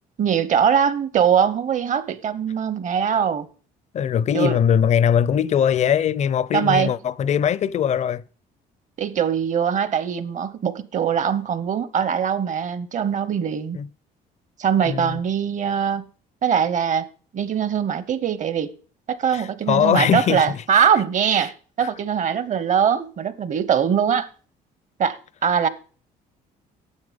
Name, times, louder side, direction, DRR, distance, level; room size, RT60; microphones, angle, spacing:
voice 1, 0.2-3.5 4.3-4.6 6.5-6.9 9.0-13.8 14.6-16.1 16.4-17.1 17.3-18.7 19.1-24.3 25.0-25.7, right 8 dB, 45° right, 1.0 m, -22 dB
voice 2, 3.9-8.2 13.7-13.9 14.8-15.2 19.3-20.8 21.4-21.5 21.8-21.9, left 8 dB, 45° left, 0.5 m, -21 dB
9.6 x 7.5 x 5.1 m
cardioid pair, 110°, 17 cm